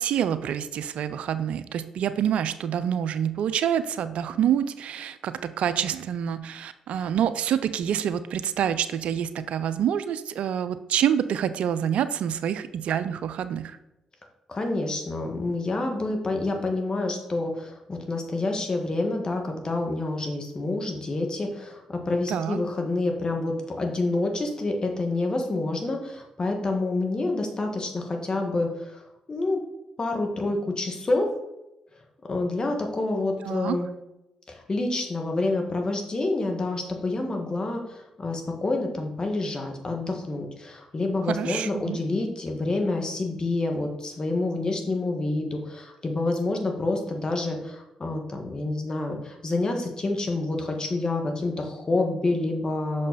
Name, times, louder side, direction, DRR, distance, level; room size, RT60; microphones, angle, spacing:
voice 1, 0.0-13.8 22.3-22.6 33.4-33.8 41.3-42.0, right 9 dB, 70° right, 13 dB, 0.4 m, -27 dB
voice 2, 14.5-29.6 30.0-31.3 32.2-33.9 34.5-53.1, left 2 dB, 40° left, 3 dB, 1.7 m, -28 dB
6.2 x 5.3 x 4.1 m, 0.92 s
supercardioid pair, 45°, 2 cm